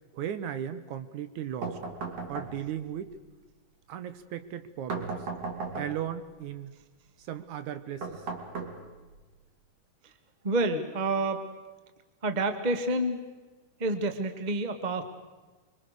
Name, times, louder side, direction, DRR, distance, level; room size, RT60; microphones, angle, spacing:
voice 1, 0.1-1.8 2.3-3.1 3.9-5.2 5.8-6.7 7.2-8.2, right 10 dB, 70° right, 12 dB, 2.3 m, -36 dB
sound 1, 1.6-2.9 4.9-6.2 8.0-9.2, right 4 dB, 50° right, 3.7 m, -36 dB
voice 2, 10.4-11.4 12.2-13.2 13.8-15.0, right 2 dB, 25° right, 8 dB, 1.0 m, -28 dB
26.0 x 24.0 x 6.6 m, 1.2 s
omnidirectional pair, 3.8 m